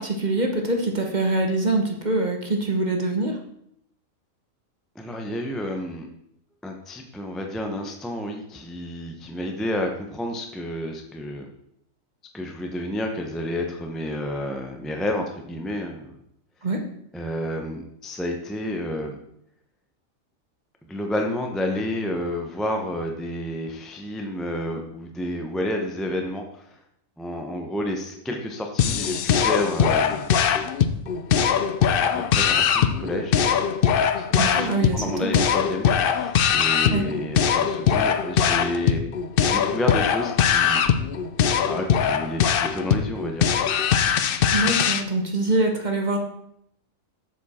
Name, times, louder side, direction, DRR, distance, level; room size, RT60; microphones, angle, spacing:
voice 1, 0.0-3.4 16.6-16.8 34.4-35.5 36.9-37.0 44.5-46.2, right 2 dB, 35° right, 3 dB, 1.0 m, -24 dB
voice 2, 4.9-6.1 6.6-11.4 12.3-16.2 17.1-19.2 20.9-26.8 27.2-30.4 32.1-33.4 34.2-39.1 39.5-40.8 41.7-43.5 44.1-44.3, left 1 dB, ahead, 2 dB, 0.6 m, -30 dB
sound 1, 28.8-45.0, left 8 dB, 60° left, 0.6 m, -21 dB
7.3 x 7.2 x 4.2 m, 0.75 s
omnidirectional pair, 1.4 m